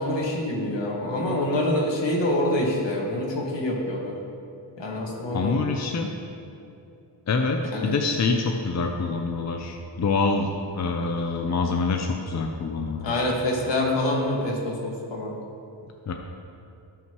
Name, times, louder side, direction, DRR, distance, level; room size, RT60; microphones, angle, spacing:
voice 1, 0.0-4.1 4.8-5.6 7.7-8.0 13.0-15.3, left 1 dB, 75° left, -2 dB, 2.0 m, -26 dB
voice 2, 5.3-6.1 7.3-10.5 10.7-13.2 16.1-16.2, left 4 dB, 40° left, 3 dB, 0.7 m, -26 dB
17.0 x 5.9 x 3.1 m, 2.7 s
cardioid pair, 95°, 44 cm